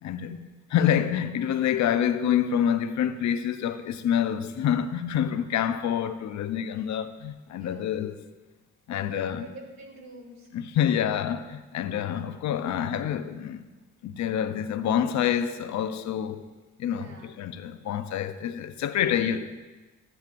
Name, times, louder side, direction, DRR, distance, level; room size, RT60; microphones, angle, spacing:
voice 1, 0.0-8.2 8.9-9.5 10.5-13.6 14.0-16.4 16.8-19.6, left 9 dB, 70° left, 0.6 m, -27 dB
voice 2, 7.6-7.9 8.9-10.5 16.9-17.4, right 2 dB, 65° right, 2.0 m, -46 dB
13.0 x 10.5 x 2.5 m
cardioid pair, 90°, 30 cm